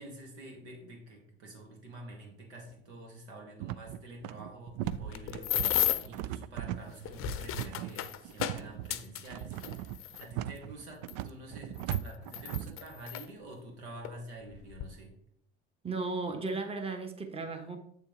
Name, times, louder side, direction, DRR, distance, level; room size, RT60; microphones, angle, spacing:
voice 1, 0.0-15.1, right 1 dB, 75° right, 1 dB, 2.2 m, -48 dB
sound 1, 3.6-12.8, right 13 dB, 55° right, 0.5 m, -38 dB
sound 2, 4.8-6.2 6.9-10.3 11.1-11.2 11.8-13.3 14.0-14.2 14.5-14.9, left 12 dB, 40° left, 0.7 m, -34 dB
voice 2, 15.8-17.8, right 3 dB, 15° right, 6 dB, 1.2 m, -35 dB
8.1 x 6.9 x 3.2 m, 0.71 s
figure-of-eight pair, 65°, 33 cm